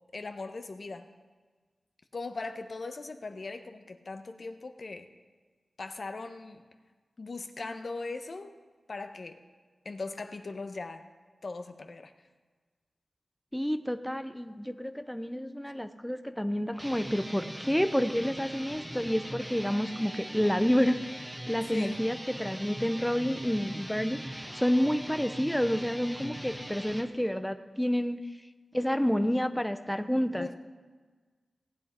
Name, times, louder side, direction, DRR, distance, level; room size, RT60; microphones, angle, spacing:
voice 1, 0.1-1.1 2.1-5.1 5.8-6.6 7.2-8.5 8.9-9.4 9.8-11.1 11.4-12.1 21.7-22.0 30.4-30.5, left 3 dB, 60° left, 7 dB, 0.8 m, -39 dB
voice 2, 13.5-28.2 28.7-30.5, equal, 5° left, 9 dB, 0.6 m, -29 dB
sound 1, 16.7-27.1, equal, 10° right, 1.1 m, -41 dB
18.0 x 7.9 x 4.3 m, 1.4 s
cardioid pair, 55°, 0 cm